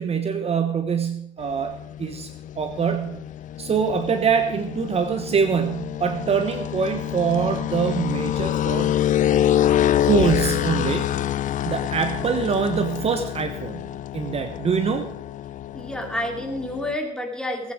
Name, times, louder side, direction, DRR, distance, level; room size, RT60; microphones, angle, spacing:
voice 1, 0.0-3.2 3.6-9.0 10.0-11.3 11.6-15.1, right 6 dB, 35° right, 7 dB, 1.2 m, -24 dB
sound 1, 1.4-17.0, left 11 dB, 50° left, 0.5 m, -26 dB
voice 2, 15.7-17.7, left 1 dB, 5° left, 2 dB, 3.0 m, -29 dB
18.5 x 9.5 x 5.0 m, 0.75 s
cardioid pair, 110°, 17 cm